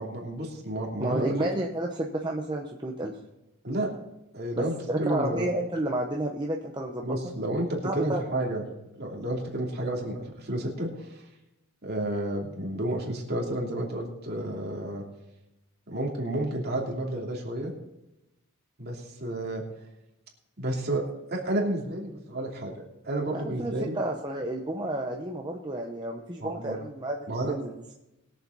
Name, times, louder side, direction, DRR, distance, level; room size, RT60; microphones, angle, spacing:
voice 1, 0.0-1.5 3.6-3.9 4.3-5.5 7.0-8.6 9.0-11.2 11.8-15.0 15.9-17.7 18.8-19.6 20.6-21.0 21.3-23.9 26.4-26.8 27.3-27.5, right 1 dB, 45° right, -1 dB, 2.9 m, -31 dB
voice 2, 1.0-3.1 4.6-7.0 7.8-8.2 23.3-27.8, right 1 dB, 20° right, 0 dB, 0.8 m, -31 dB
21.5 x 7.4 x 4.0 m, 0.92 s
head